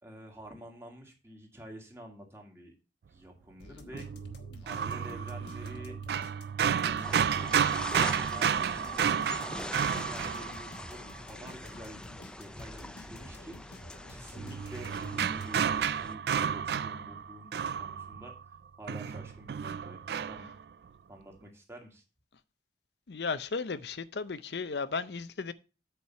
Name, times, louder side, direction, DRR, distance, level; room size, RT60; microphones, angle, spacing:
voice 1, 0.0-2.7 3.1-4.1 4.6-5.9 6.8-7.6 8.1-9.2 9.7-17.5 17.8-18.3 18.8-20.0 20.3-20.5 21.1-22.0, equal, 15° right, 1.8 m, -49 dB
sound 1, 3.6-15.8, left 1 dB, 90° left, 1.3 m, -50 dB
sound 2, 3.9-11.1 14.4-18.6 18.9-20.6, right 7 dB, 65° right, 0.3 m, -31 dB
sound 3, 7.0-16.1, left 1 dB, 5° left, 0.4 m, -43 dB
voice 2, 23.1-25.5, left 4 dB, 70° left, 0.6 m, -35 dB
8.3 x 4.7 x 5.7 m
head